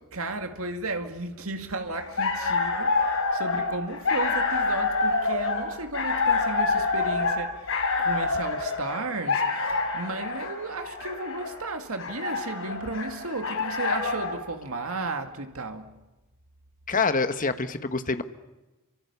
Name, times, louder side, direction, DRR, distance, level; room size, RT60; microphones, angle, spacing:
voice 1, 0.1-15.9, right 2 dB, 70° right, 2.1 m, -34 dB
sound 1, 2.0-14.4, left 3 dB, 60° left, 5.2 m, -27 dB
voice 2, 16.9-18.2, left 4 dB, 35° left, 1.4 m, -26 dB
29.5 x 25.0 x 7.0 m
head